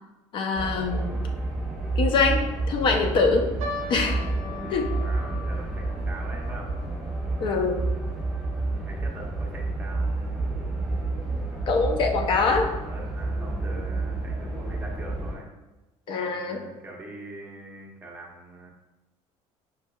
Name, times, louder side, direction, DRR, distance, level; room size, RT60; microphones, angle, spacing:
voice 1, 0.3-1.2 2.0-3.5 3.9-4.2 4.7-4.9 7.4-7.9 11.7-12.7 16.1-16.6, left 4 dB, 45° left, 3 dB, 0.4 m, -24 dB
sound 1, 0.6-15.3, right 2 dB, 5° left, 1.3 m, -29 dB
sound 2, 3.6-10.1 10.4-10.5 11.2-11.5 12.1-12.2 12.5-12.7, left 2 dB, 65° right, 0.6 m, -42 dB
voice 2, 4.5-6.8 8.6-10.4 12.8-15.5 16.3-18.7, right 2 dB, 15° right, -2 dB, 0.7 m, -43 dB
5.7 x 2.6 x 2.2 m, 1.1 s
cardioid pair, 135°, 12 cm